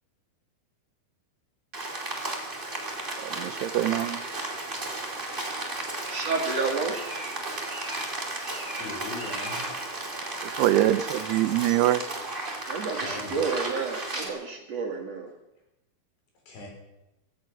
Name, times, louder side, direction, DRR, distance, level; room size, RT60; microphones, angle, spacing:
Rain, 1.7-14.3, right 2 dB, 15° right, 2.1 m, -34 dB
voice 1, 3.2-4.2 10.4-12.0, right 14 dB, 90° right, 13 dB, 2.8 m, -24 dB
voice 2, 6.1-7.0 12.7-15.3, right 4 dB, 50° right, 2 dB, 2.2 m, -30 dB
voice 3, 8.8-9.7 12.9-13.5 16.5-16.7, left 2 dB, 70° left, 0 dB, 6.1 m, -39 dB
16.5 x 14.0 x 6.2 m, 0.93 s
omnidirectional pair, 4.6 m